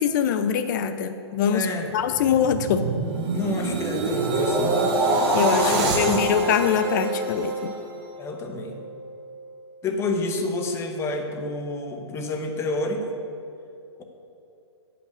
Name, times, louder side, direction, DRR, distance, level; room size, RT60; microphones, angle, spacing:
voice 1, 0.0-1.7 1.9-2.8 5.3-7.7, left 8 dB, 40° left, 10 dB, 0.5 m, -23 dB
voice 2, 1.5-1.9 3.3-4.8 5.6-6.3 8.2-8.8 9.8-13.1, left 2 dB, 20° left, 4 dB, 1.1 m, -29 dB
sound 1, 1.9-8.2 8.6-8.9, right 2 dB, 30° right, 1.7 m, -25 dB
9.9 x 5.9 x 8.1 m, 2.7 s
hypercardioid pair, 135°, 15 cm